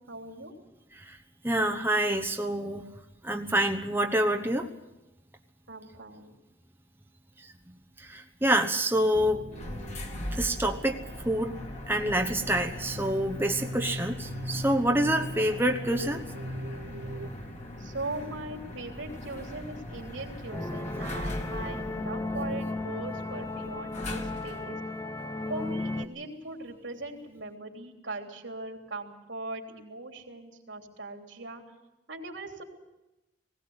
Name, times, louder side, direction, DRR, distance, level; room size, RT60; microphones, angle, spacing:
voice 1, 0.1-0.5 5.7-6.4 17.8-24.8 25.5-31.6 32.1-32.6, right 2 dB, 80° right, 2 dB, 3.3 m, -40 dB
voice 2, 1.4-2.8 3.2-4.7 8.0-9.5 10.3-11.0 11.2-11.6 11.9-16.2, right 1 dB, 10° right, 4 dB, 1.0 m, -27 dB
sound 1, 9.1-17.3, equal, 65° right, 1.6 m, -40 dB
sound 2, 9.5-24.7, left 1 dB, 35° left, 2.5 m, -41 dB
sound 3, 20.5-26.1, left 2 dB, 15° left, 0.8 m, -34 dB
20.0 x 17.0 x 8.0 m, 0.97 s
head